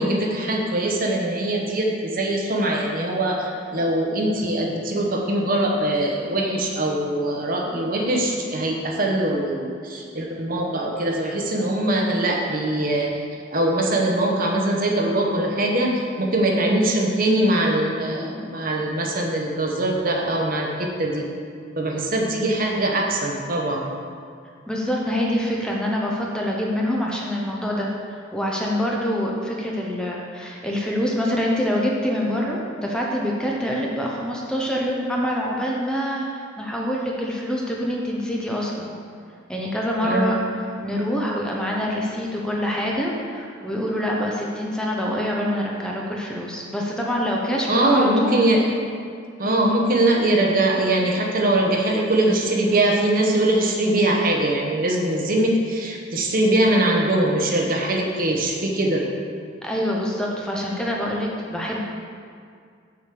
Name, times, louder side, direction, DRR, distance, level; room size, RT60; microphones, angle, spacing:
voice 1, 0.0-13.1 13.5-21.3 21.8-23.9 40.0-40.4 47.7-48.7 49.4-59.0, right 1 dB, 45° right, 0 dB, 1.0 m, -22 dB
voice 2, 24.7-38.9 39.5-40.4 40.8-48.5 59.6-61.8, equal, 5° left, -3 dB, 0.8 m, -25 dB
6.8 x 5.1 x 6.7 m, 2.2 s
head